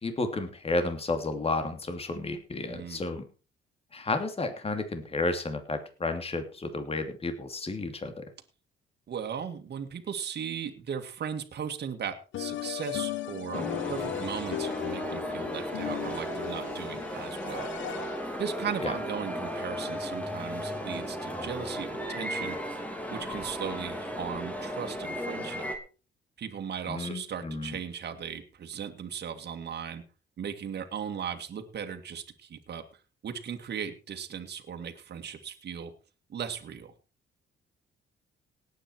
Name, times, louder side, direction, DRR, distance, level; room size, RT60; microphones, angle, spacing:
voice 1, 0.0-3.2 3.9-8.2 18.8-18.9 26.9-27.8, left 2 dB, 30° left, 7 dB, 3.0 m, -32 dB
voice 2, 2.7-3.0 9.1-17.7 18.4-22.6 23.1-25.7 26.4-30.0 30.4-32.8 33.2-35.9 36.3-36.9, right 7 dB, 55° right, 5 dB, 2.3 m, -37 dB
sound 1, 12.3-18.4, left 12 dB, 75° left, 1.0 m, -37 dB
sound 2, 13.5-25.8, equal, 5° left, 3.4 m, -35 dB
18.0 x 9.1 x 4.7 m, 0.35 s
cardioid pair, 90°, 20 cm